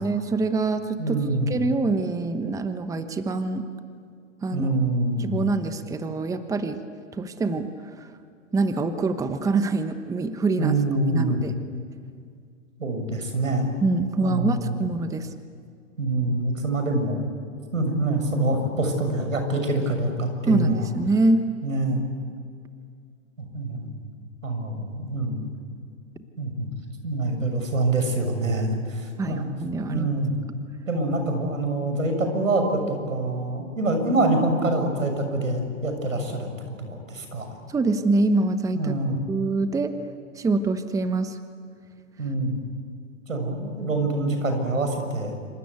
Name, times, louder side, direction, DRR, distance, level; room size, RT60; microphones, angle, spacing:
voice 1, 0.0-3.7 4.4-4.7 5.2-6.8 7.1-8.1 8.5-10.8 11.1-11.6 13.8-15.3 20.5-21.4 29.2-30.1 37.7-39.0 39.3-39.9 40.3-41.4, right 3 dB, 10° right, 9 dB, 1.1 m, -25 dB
voice 2, 1.0-1.5 4.5-5.5 10.6-11.4 12.8-13.7 14.2-14.8 16.0-17.2 17.7-20.9 21.6-22.0 23.4-23.9 24.4-25.5 26.4-26.7 27.0-29.5 29.9-30.3 30.9-36.5 36.8-37.5 38.7-39.2 42.2-42.6 43.3-45.4, right 2 dB, 90° right, 5 dB, 6.7 m, -25 dB
27.0 x 26.5 x 8.3 m, 2.2 s
hypercardioid pair, 125°, 38 cm